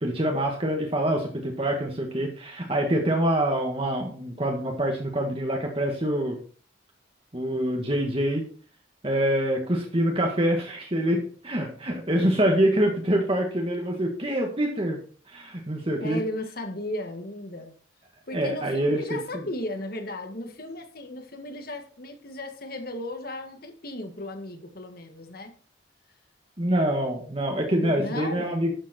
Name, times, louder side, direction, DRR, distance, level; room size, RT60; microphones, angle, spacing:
voice 1, 0.0-6.4 7.3-8.4 9.0-15.0 15.3-16.2 18.3-19.4 26.6-28.7, right 1 dB, 30° right, 1 dB, 1.7 m, -25 dB
voice 2, 16.0-17.7 18.3-25.5 27.7-28.6, left 1 dB, 50° left, 6 dB, 1.9 m, -35 dB
12.0 x 7.2 x 4.4 m, 0.42 s
head